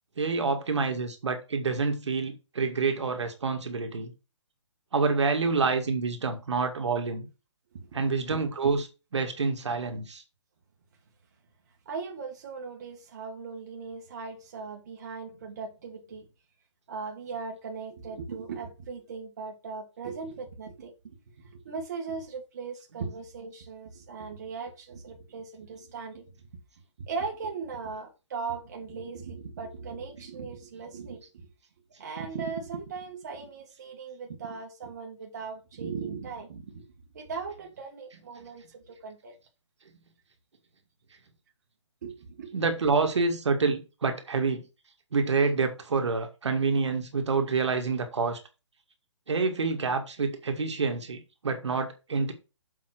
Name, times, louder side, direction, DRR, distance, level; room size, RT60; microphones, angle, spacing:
voice 1, 0.2-4.1 4.9-7.3 7.9-8.9 9.1-10.2 42.5-44.6 45.1-48.4 49.3-52.3, right 4 dB, 70° right, 2.0 m, -27 dB
voice 2, 7.7-8.1 11.9-16.3 16.9-26.3 27.0-31.5 32.0-36.9 37.1-39.3 42.0-42.5, right 5 dB, 35° right, 1.8 m, -38 dB
7.3 x 4.5 x 6.1 m
hypercardioid pair, 175°, 16 cm